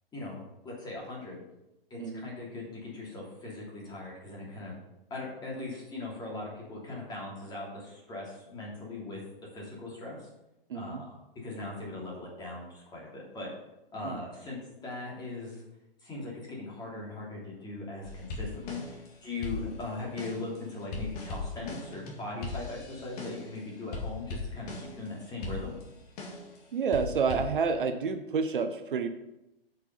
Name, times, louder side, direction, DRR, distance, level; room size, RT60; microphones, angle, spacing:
voice 1, 0.6-1.4 1.9-4.7 5.1-9.2 9.5-10.3 10.7-13.5 13.9-15.6 16.0-25.8, left 2 dB, 15° left, -4 dB, 3.0 m, -40 dB
voice 2, 2.0-2.3 10.7-11.0 14.0-14.2 26.7-29.1, right 5 dB, 60° right, 8 dB, 0.8 m, -29 dB
sound 1, 18.0-19.1 19.4-23.6 23.9-25.1 25.4-26.6 26.9-27.5, left 3 dB, 40° left, 2.1 m, -39 dB
8.0 x 6.0 x 5.6 m, 0.91 s
figure-of-eight pair, 120°, 30 cm